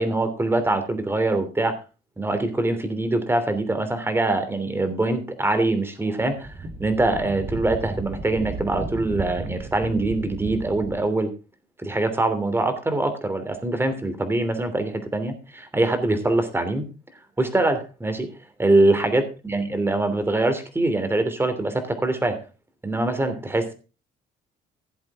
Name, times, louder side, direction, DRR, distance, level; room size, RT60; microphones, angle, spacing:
voice 1, 0.0-1.8 2.2-6.5 6.8-11.3 11.8-16.9 17.4-18.3 18.6-22.4 22.8-23.7, right 2 dB, 15° right, 9 dB, 3.0 m, -23 dB
Wind, 6.3-11.0, right 3 dB, 35° right, 3.3 m, -34 dB
16.0 x 7.9 x 3.6 m, 0.33 s
cardioid pair, 110°, 17 cm